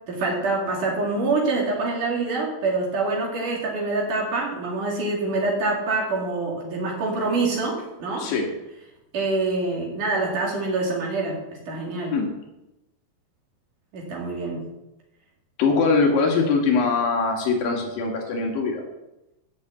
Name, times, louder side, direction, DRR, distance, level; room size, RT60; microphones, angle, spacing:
voice 1, 0.1-8.3 9.1-11.4 11.7-12.1 13.9-14.6, right 3 dB, 70° right, -2 dB, 3.8 m, -25 dB
voice 2, 8.2-8.5 12.1-12.3 15.6-18.8, left 4 dB, 90° left, 0 dB, 3.6 m, -22 dB
11.5 x 6.7 x 8.2 m, 0.94 s
omnidirectional pair, 3.9 m